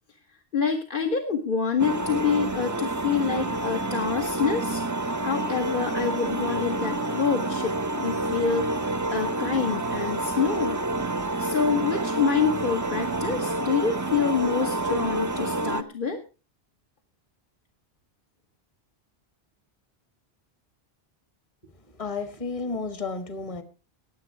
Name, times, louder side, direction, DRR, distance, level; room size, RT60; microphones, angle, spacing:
voice 1, 0.5-10.8 11.4-16.2, left 6 dB, 55° left, 1.5 m, -27 dB
sound 1, 1.8-15.8, right 2 dB, 20° right, 0.7 m, -28 dB
voice 2, 21.6-23.6, left 4 dB, 35° left, 1.4 m, -33 dB
19.0 x 7.9 x 4.6 m
omnidirectional pair, 1.0 m